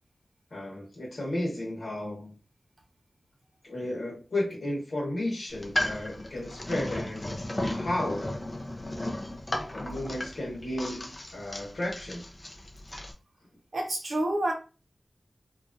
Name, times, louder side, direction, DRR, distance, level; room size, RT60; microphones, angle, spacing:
voice 1, 0.5-2.4 3.6-8.3 9.7-12.2, left 1 dB, 75° left, 1.1 m, -33 dB
sound 1, 5.5-13.1, left 1 dB, 30° left, 0.5 m, -35 dB
voice 2, 13.7-14.5, right 1 dB, 65° right, 0.9 m, -28 dB
2.9 x 2.4 x 2.5 m
wide cardioid pair, 80°, 0 cm